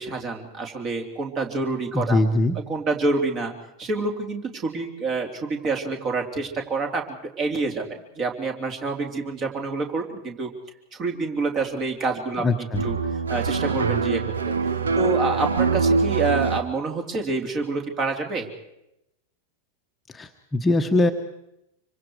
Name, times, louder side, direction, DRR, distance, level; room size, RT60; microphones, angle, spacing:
voice 1, 0.0-2.2 2.7-3.5 3.8-7.0 7.4-10.5 10.9-12.5 12.8-13.0 13.3-14.5 14.9-18.5, right 3 dB, 30° right, 3 dB, 3.5 m, -27 dB
voice 2, 1.9-2.6 12.4-12.8 20.1-21.1, left 2 dB, 15° left, 5 dB, 1.3 m, -22 dB
sound 1, 12.7-16.6, right 4 dB, 70° right, 1.2 m, -23 dB
26.0 x 24.5 x 4.8 m, 0.84 s
figure-of-eight pair, 90°, 0 cm